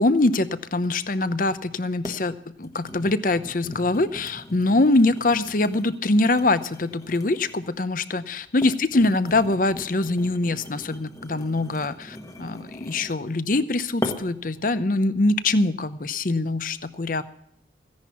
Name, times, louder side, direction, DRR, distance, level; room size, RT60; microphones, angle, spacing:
voice 1, 0.0-17.2, left 2 dB, 45° left, 13 dB, 0.7 m, -23 dB
sound 1, 2.0-2.3 2.6-7.8 8.4-13.3 14.0-14.5 15.0-15.2, left 1 dB, 20° left, 1.2 m, -39 dB
16.0 x 10.5 x 5.8 m, 0.71 s
head